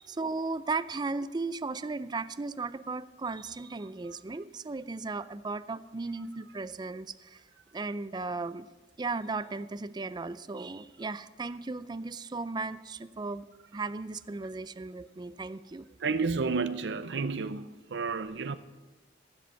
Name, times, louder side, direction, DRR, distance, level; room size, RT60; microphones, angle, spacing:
voice 1, 0.0-7.4 7.7-8.7 9.0-13.5 13.7-15.9, right 3 dB, 25° right, 15 dB, 0.4 m, -36 dB
voice 2, 16.0-18.6, right 4 dB, 75° right, 11 dB, 0.5 m, -31 dB
15.0 x 7.7 x 7.1 m, 1.2 s
head